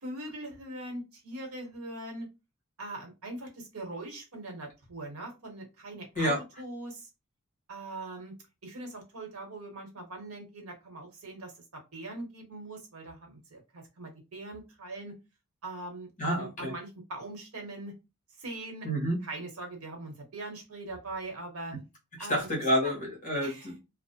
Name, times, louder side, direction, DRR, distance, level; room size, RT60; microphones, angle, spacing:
voice 1, 0.0-2.3 2.8-7.1 7.7-8.3 8.6-15.2 15.6-17.9 18.4-18.9 19.2-21.8 22.2-22.5 22.8-22.9 23.4-23.7, right 2 dB, 75° right, 3 dB, 0.9 m, -41 dB
voice 2, 16.2-16.7 18.8-19.2 22.3-23.8, equal, 35° left, -1 dB, 1.0 m, -29 dB
2.4 x 2.0 x 2.7 m, 0.26 s
head